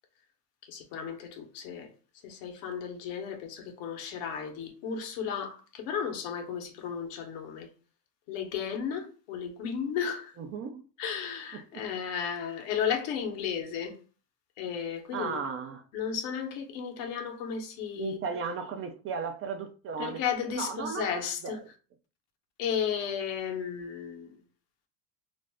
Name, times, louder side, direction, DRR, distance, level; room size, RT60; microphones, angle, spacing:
voice 1, 0.6-1.9 2.2-7.7 8.3-10.3 11.0-13.9 14.6-15.4 15.9-18.2 20.0-21.6 22.6-24.3, left 7 dB, 65° left, 1.0 m, -34 dB
voice 2, 10.4-10.9 11.5-11.8 15.1-15.8 18.0-20.2 20.6-21.7, right 5 dB, 35° right, 0.4 m, -36 dB
2.5 x 2.1 x 3.4 m
supercardioid pair, 95°, 42 cm